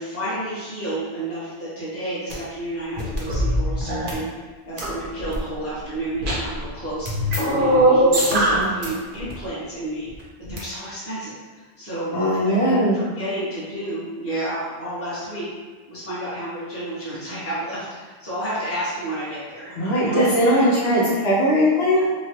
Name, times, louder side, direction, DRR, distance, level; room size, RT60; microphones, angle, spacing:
voice 1, 0.0-4.3 4.6-10.1 10.5-12.6 12.9-15.5 15.9-20.9, right 1 dB, 15° left, -10 dB, 0.9 m, -31 dB
sound 1, 2.3-2.4 2.9-4.1 4.8-5.4 6.1-6.7 7.1-8.9 9.1-9.3 10.4-10.6, right 1 dB, 55° right, 0.8 m, -20 dB
voice 2, 8.3-8.7 12.1-13.0 19.8-22.0, equal, 70° left, -6 dB, 0.9 m, -19 dB
3.1 x 2.3 x 2.8 m, 1.4 s
omnidirectional pair, 1.2 m